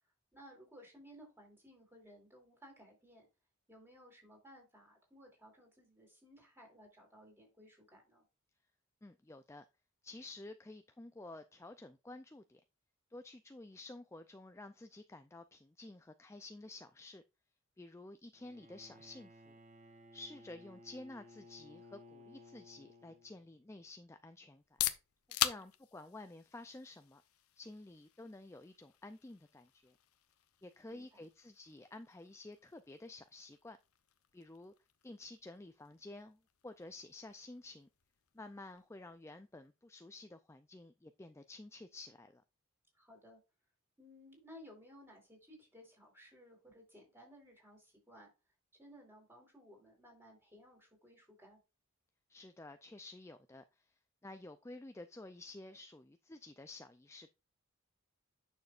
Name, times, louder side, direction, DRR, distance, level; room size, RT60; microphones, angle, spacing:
voice 1, 0.3-3.3 3.7-8.2 25.4-25.6 30.9-31.1 43.0-43.4 44.0-48.3 48.8-51.6, equal, 10° right, 4.1 m, -58 dB
voice 2, 9.0-9.6 10.0-12.6 13.1-17.2 17.8-19.6 20.1-24.6 25.4-27.2 27.6-29.9 30.6-33.8 34.3-34.7 35.0-37.9 38.3-42.4 52.3-53.9 54.2-57.3, left 2 dB, 15° left, 0.4 m, -51 dB
Bowed string instrument, 18.3-23.6, left 1 dB, 35° right, 0.8 m, -58 dB
sound 1, 24.5-40.2, left 12 dB, 90° left, 0.8 m, -45 dB
9.6 x 6.5 x 2.5 m
head